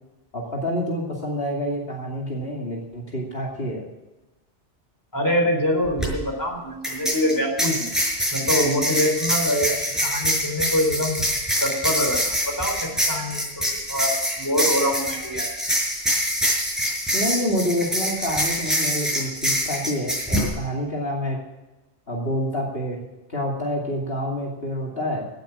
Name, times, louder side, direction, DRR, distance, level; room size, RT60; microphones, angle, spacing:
voice 1, 0.3-3.8 17.1-21.4 22.1-23.0 23.3-25.3, equal, 55° left, -2 dB, 2.9 m, -27 dB
voice 2, 5.1-7.9 8.3-11.2 11.6-12.2 12.5-15.5, equal, 15° left, 1 dB, 4.2 m, -25 dB
sound 1, 5.8-6.1 6.8-20.5, equal, ahead, 6.1 m, -25 dB
17.5 x 8.8 x 7.3 m, 1.1 s
omnidirectional pair, 1.2 m